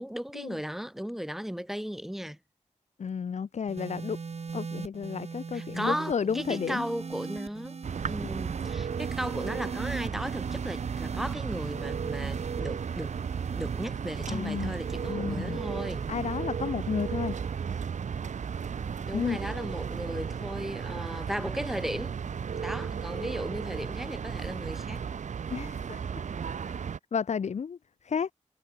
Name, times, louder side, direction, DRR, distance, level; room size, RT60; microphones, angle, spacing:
voice 1, 0.0-2.4 5.5-7.8 8.1-13.1 13.5-16.1 19.1-22.1 22.5-25.0, equal, ahead, 3.5 m, -36 dB
voice 2, 3.0-4.2 4.5-6.9 14.3-14.7 15.1-15.6 16.1-17.4 19.1-19.4 25.5-26.2 27.1-28.3, left 6 dB, 65° left, 0.8 m, -32 dB
sound 1, 3.7-20.2 21.1-21.4, right 5 dB, 55° right, 3.4 m, -42 dB
sound 2, 7.8-27.0, right 7 dB, 75° right, 1.0 m, -34 dB
wide cardioid pair, 85°, 13 cm